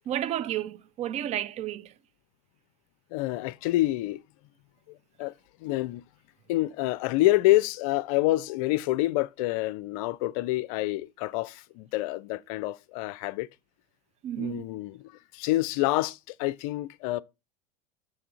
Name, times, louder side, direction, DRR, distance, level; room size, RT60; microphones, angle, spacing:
voice 1, 0.1-1.9 14.2-14.6, right 12 dB, 30° right, 0.4 m, -31 dB
voice 2, 3.1-4.2 4.9-5.3 5.6-6.0 6.5-13.5 14.4-17.2, left 17 dB, 55° left, 0.5 m, -27 dB
6.3 x 3.7 x 5.7 m
figure-of-eight pair, 75°, 21 cm